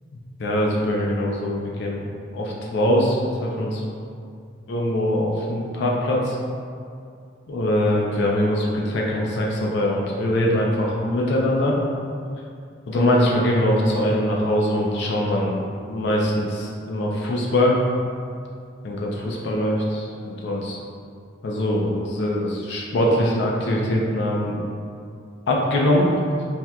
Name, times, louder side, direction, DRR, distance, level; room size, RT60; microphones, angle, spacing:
voice 1, 0.4-2.0 2.3-3.8 4.7-6.4 7.5-11.8 12.9-15.6 15.9-17.8 18.8-20.8 21.4-24.6 25.5-26.1, left 1 dB, 65° left, -2 dB, 0.4 m, -22 dB
4.1 x 2.2 x 2.3 m, 2.3 s
head